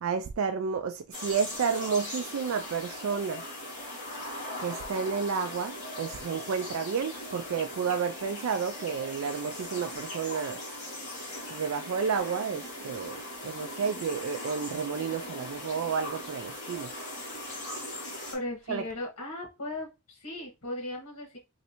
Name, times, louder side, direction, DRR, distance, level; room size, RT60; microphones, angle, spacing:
voice 1, 0.0-3.5 4.6-10.6 11.5-16.9 18.7-18.8, right 6 dB, 65° right, 0.3 m, -31 dB
sound 1, 1.1-18.4, left 1 dB, 35° left, 1.4 m, -39 dB
voice 2, 18.3-21.4, left 1 dB, 80° left, 1.3 m, -37 dB
3.1 x 2.7 x 2.9 m
head